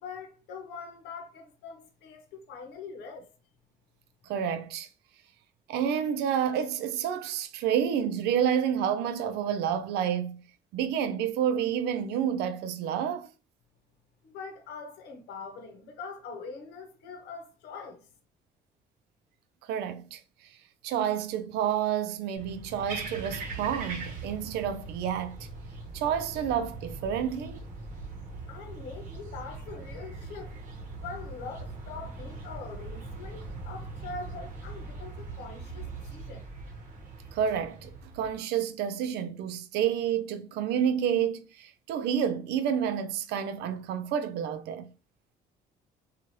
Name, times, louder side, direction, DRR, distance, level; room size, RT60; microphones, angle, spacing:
voice 1, 0.0-3.3 14.2-18.1 28.5-30.6 31.0-36.5, left 4 dB, 80° left, 0.8 m, -43 dB
voice 2, 4.3-4.9 5.7-10.4 10.7-13.3 19.7-20.2 20.8-25.5 25.9-27.6 37.3-37.9 38.1-44.9, right 8 dB, 80° right, 0.4 m, -29 dB
sound 1, 22.4-38.4, right 3 dB, 50° right, 0.9 m, -41 dB
3.1 x 2.3 x 2.7 m
cardioid pair, 110°, 17 cm